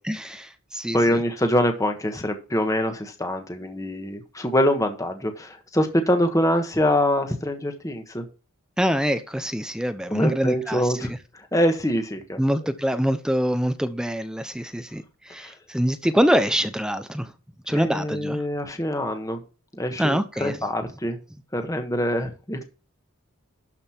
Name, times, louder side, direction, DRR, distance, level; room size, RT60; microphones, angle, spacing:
voice 1, 0.0-1.2 8.8-10.8 12.4-17.3 17.7-18.4 20.0-20.6, equal, 5° right, 0.7 m, -25 dB
voice 2, 0.9-8.3 10.1-12.4 15.4-15.5 17.7-19.4 19.7-21.2 21.5-22.7, equal, 15° left, 1.3 m, -24 dB
12.5 x 5.4 x 4.4 m
head